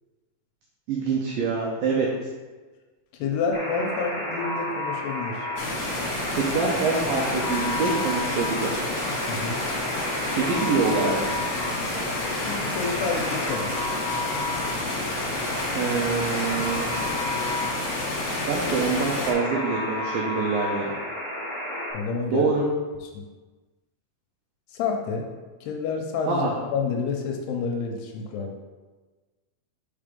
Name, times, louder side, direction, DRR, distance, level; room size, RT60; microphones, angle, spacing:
voice 1, 0.9-2.1 6.3-8.8 10.3-11.4 15.7-16.9 18.5-20.9 22.3-22.6 26.3-26.5, right 4 dB, 90° right, -2 dB, 2.0 m, -25 dB
voice 2, 3.2-5.5 9.3-9.6 12.4-13.8 21.9-22.5 23.1-23.2 24.7-25.3 25.6-28.6, left 5 dB, 80° left, 2 dB, 2.6 m, -29 dB
Alarm, 3.5-21.9, left 1 dB, 50° right, 0.7 m, -31 dB
sound 1, 5.6-19.3, left 2 dB, 60° left, 2.4 m, -30 dB
5.5 x 4.9 x 5.2 m, 1.3 s
omnidirectional pair, 5.1 m